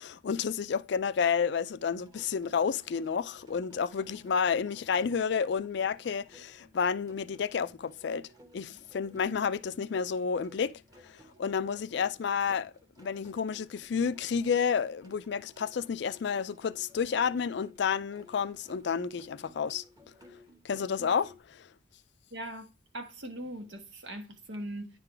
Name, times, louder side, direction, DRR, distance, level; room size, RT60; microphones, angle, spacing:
voice 1, 0.0-8.3 8.5-12.7 13.0-19.8 20.6-21.7, left 6 dB, 65° left, 0.4 m, -30 dB
sound 1, 1.9-21.4, left 1 dB, 20° right, 1.3 m, -58 dB
voice 2, 22.3-22.7 22.9-24.9, right 1 dB, 75° right, 1.4 m, -40 dB
9.9 x 3.8 x 3.3 m
head